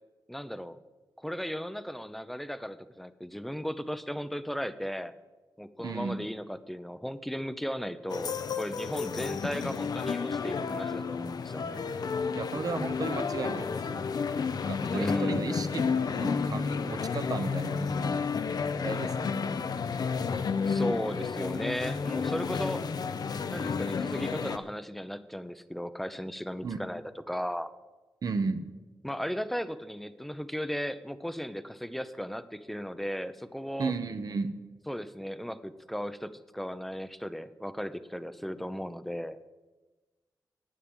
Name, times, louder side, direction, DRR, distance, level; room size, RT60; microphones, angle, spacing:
voice 1, 0.3-0.8 1.2-5.1 5.6-11.8 14.9-15.5 20.7-22.9 23.5-27.0 27.3-27.7 29.0-33.9 34.9-39.4, equal, ahead, 13 dB, 0.6 m, -36 dB
voice 2, 5.8-6.2 12.3-14.0 14.7-15.9 16.1-17.9 18.8-19.4 26.6-26.8 28.2-28.6 33.8-34.5, right 4 dB, 55° right, 9 dB, 1.1 m, -34 dB
sound 1, 8.1-24.6, left 5 dB, 60° left, 0.7 m, -31 dB
10.0 x 9.3 x 8.9 m, 1.2 s
wide cardioid pair, 105°, 7 cm